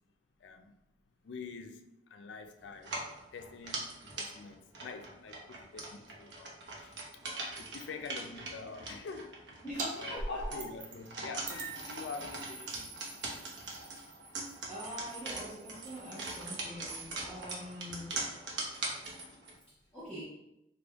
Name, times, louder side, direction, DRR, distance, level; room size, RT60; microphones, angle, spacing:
voice 1, 0.4-0.8 1.2-2.9 3.3-7.0 7.5-9.4 9.9-14.0, left 4 dB, 85° left, 6 dB, 0.4 m, -46 dB
sound 1, 2.8-19.6, right 2 dB, 80° right, 0.7 m, -42 dB
voice 2, 9.6-10.6 14.7-18.3 19.9-20.2, equal, 5° left, -11 dB, 0.8 m, -44 dB
sound 2, 9.8-9.9 10.2-11.1 11.5-16.6, right 2 dB, 45° right, 0.5 m, -44 dB
3.3 x 2.2 x 3.4 m, 0.85 s
head